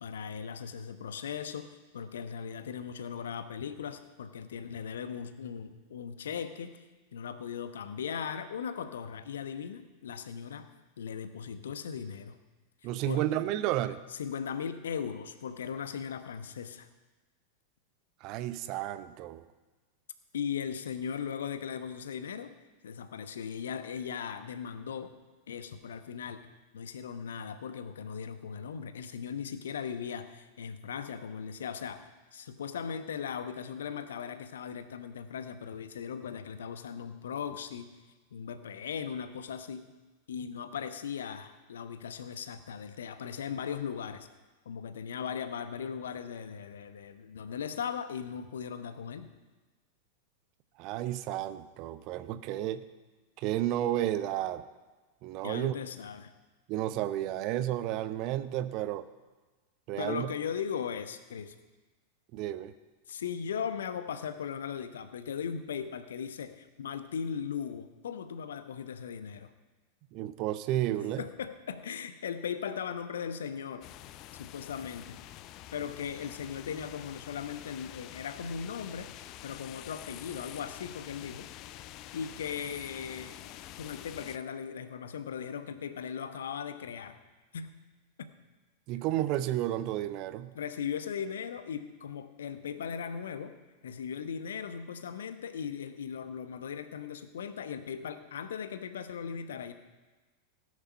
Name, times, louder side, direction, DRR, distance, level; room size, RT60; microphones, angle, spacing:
voice 1, 0.0-6.8 7.1-10.7 11.0-12.4 12.8-13.2 14.2-16.9 20.3-22.5 22.8-25.1 25.5-26.5 26.7-37.9 38.3-39.9 40.3-44.3 44.6-49.3 55.4-56.3 60.0-61.5 63.1-69.5 71.2-73.9 74.4-75.2 75.7-79.1 79.4-81.5 82.1-83.4 83.8-87.2 87.5-87.7 88.2-88.3 90.5-93.6 93.8-99.7, left 7 dB, 65° left, 10 dB, 1.0 m, -38 dB
voice 2, 12.8-14.0 18.2-19.5 50.8-52.8 53.4-54.6 55.2-55.7 56.7-59.1 59.9-60.3 62.3-62.7 70.1-71.2 88.9-90.5, right 13 dB, 40° right, 13 dB, 0.7 m, -32 dB
sound 1, 73.8-84.4, left 14 dB, 40° left, 0.5 m, -47 dB
17.0 x 9.8 x 5.4 m, 1.2 s
figure-of-eight pair, 90°, 0 cm